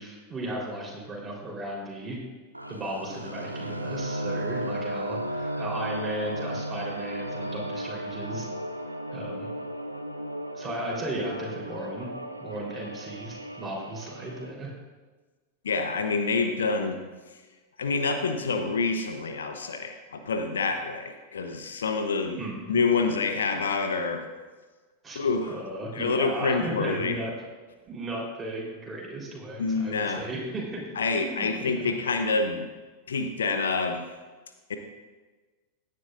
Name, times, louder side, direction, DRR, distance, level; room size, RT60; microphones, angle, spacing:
voice 1, 0.0-2.2 2.7-8.5 9.1-9.5 10.5-12.1 12.4-14.7 22.4-22.8 25.0-25.2 25.5-27.3 27.9-30.8 31.2-31.9, right 1 dB, 15° right, -3 dB, 3.8 m, -35 dB
sound 1, 2.5-14.5, right 1 dB, 85° right, 0.6 m, -35 dB
voice 2, 15.6-17.0 17.8-22.4 22.7-24.2 25.1-25.6 25.9-27.2 29.6-30.2 31.0-32.7 33.1-34.0 34.7-34.8, left 4 dB, 65° left, 6 dB, 0.9 m, -27 dB
16.5 x 10.5 x 2.6 m, 1.3 s
figure-of-eight pair, 90°, 0 cm